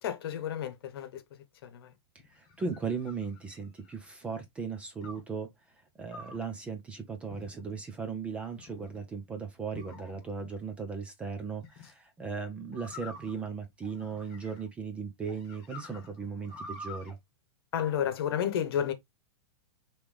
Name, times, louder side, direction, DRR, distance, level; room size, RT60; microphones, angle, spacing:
voice 1, 0.0-1.2 1.6-1.9 17.7-18.9, left 9 dB, 60° left, 1.0 m, -31 dB
sound 1, 2.2-4.0 5.0-5.4 6.1-6.5 7.3-7.8 8.4-9.0 9.7-10.5 11.6-11.9 12.7-14.8 15.3-17.1, left 2 dB, 30° left, 1.5 m, -48 dB
voice 2, 2.3-5.5 6.0-17.1, right 5 dB, 10° right, 0.4 m, -37 dB
5.1 x 3.0 x 3.3 m
supercardioid pair, 170°, 14 cm